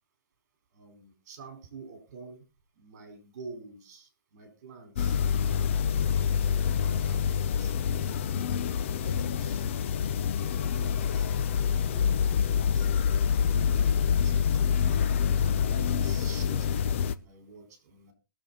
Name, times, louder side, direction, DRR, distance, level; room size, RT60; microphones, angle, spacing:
voice 1, 0.7-2.4 2.8-5.2 5.8-6.3 6.7-7.9 8.8-9.6 10.6-11.3 11.8-12.9 13.4-14.9 15.6-18.1, right 4 dB, 45° right, 7 dB, 4.5 m, -48 dB
sound 1, 5.0-17.1, left 7 dB, 35° left, 0.6 m, -26 dB
20.5 x 7.1 x 4.2 m, 0.31 s
hypercardioid pair, 170°, 11 cm